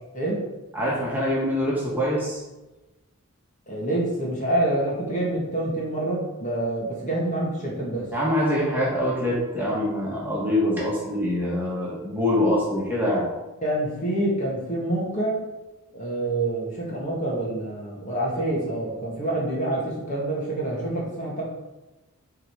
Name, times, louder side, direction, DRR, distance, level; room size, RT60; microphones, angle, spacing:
voice 1, 0.7-2.4 8.1-13.2, left 1 dB, 10° right, -6 dB, 1.9 m, -24 dB
voice 2, 3.7-8.1 8.9-9.0 13.6-15.4 15.9-21.4, right 1 dB, 35° left, -4 dB, 2.2 m, -27 dB
10.5 x 3.9 x 4.9 m, 1.1 s
head